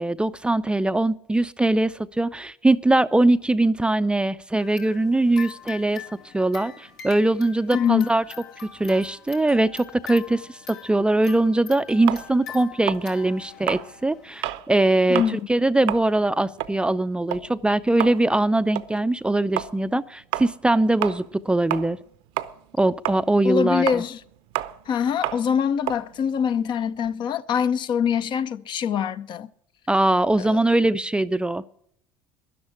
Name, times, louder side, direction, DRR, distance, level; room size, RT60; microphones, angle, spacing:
voice 1, 0.0-6.0 6.3-8.2 8.8-22.0 22.8-24.0 29.9-31.6, right 2 dB, 10° right, 0.5 m, -22 dB
sound 1, 4.6-14.6, left 8 dB, 80° left, 2.3 m, -42 dB
voice 2, 7.7-8.1 15.1-15.4 23.4-24.2 24.9-29.5 30.4-30.6, left 7 dB, 50° left, 0.7 m, -24 dB
sound 2, 12.1-14.7 15.0-15.4 15.7-22.1 22.4-27.1, right 14 dB, 65° right, 0.7 m, -31 dB
12.5 x 11.0 x 8.6 m
hypercardioid pair, 75°, 11 cm